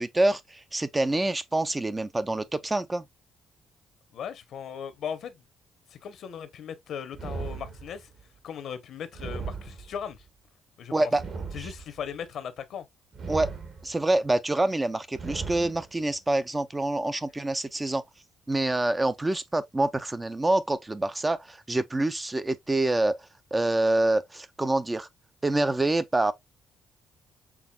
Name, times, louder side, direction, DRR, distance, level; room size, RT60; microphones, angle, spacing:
voice 1, 0.0-3.0 10.9-11.2 11.6-11.7 13.3-13.5 13.8-18.0 18.5-23.2 23.5-25.1 25.4-26.3, right 2 dB, 20° right, 0.5 m, -26 dB
voice 2, 4.1-5.4 5.9-8.1 8.4-10.2 10.8-11.1 11.5-12.9, left 8 dB, 70° left, 0.9 m, -38 dB
sound 1, 7.1-8.2 9.1-10.2 11.1-12.2 13.1-14.2 15.1-16.2, right 5 dB, 55° right, 1.8 m, -38 dB
6.1 x 3.5 x 2.3 m
cardioid pair, 90°, 0 cm